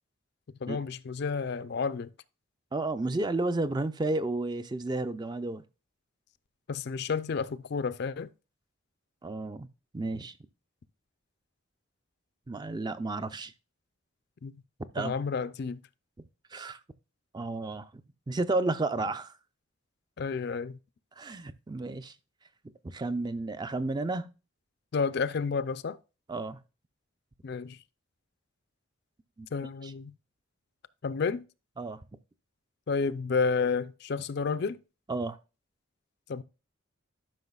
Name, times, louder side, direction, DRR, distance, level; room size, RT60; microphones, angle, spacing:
voice 1, 0.6-2.1 6.7-8.3 14.4-14.6 15.0-15.8 20.2-20.8 24.9-26.0 27.4-27.8 29.5-30.1 31.0-31.4 32.9-34.8 36.3-36.4, left 5 dB, 50° left, 0.4 m, -31 dB
voice 2, 2.7-5.6 9.2-9.7 9.9-10.3 12.5-13.5 14.9-15.1 16.5-16.8 17.3-17.9 18.3-19.3 21.2-22.1 22.8-24.3 26.3-26.6 29.4-29.5 29.8-29.9 31.8-32.0 35.1-35.4, right 2 dB, 20° right, 0.4 m, -32 dB
12.0 x 5.7 x 2.3 m
head